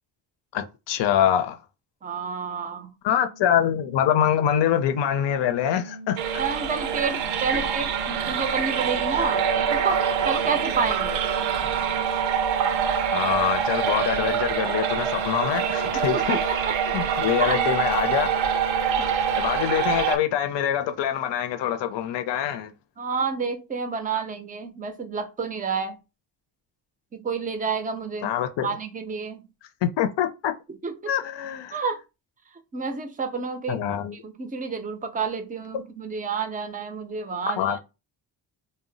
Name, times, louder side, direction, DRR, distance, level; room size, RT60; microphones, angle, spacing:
voice 1, 0.5-1.6 3.0-6.2 13.1-16.4 16.9-18.3 19.4-22.7 28.2-28.7 29.8-30.5 31.1-31.8 33.7-34.2 37.6-37.8, left 10 dB, 65° left, 0.6 m, -24 dB
voice 2, 2.0-2.9 6.4-11.2 15.9-16.9 17.4-17.6 19.0-19.1 23.0-26.0 27.1-28.3 28.6-29.4 30.8-31.1 31.7-32.0 32.7-33.8 34.2-37.8, right 5 dB, 20° right, 0.4 m, -29 dB
sound 1, 3.0-20.5, right 1 dB, 25° left, 0.6 m, -40 dB
sound 2, 6.2-20.2, right 8 dB, 85° right, 0.6 m, -25 dB
2.1 x 2.0 x 3.7 m
cardioid pair, 105°, 45 cm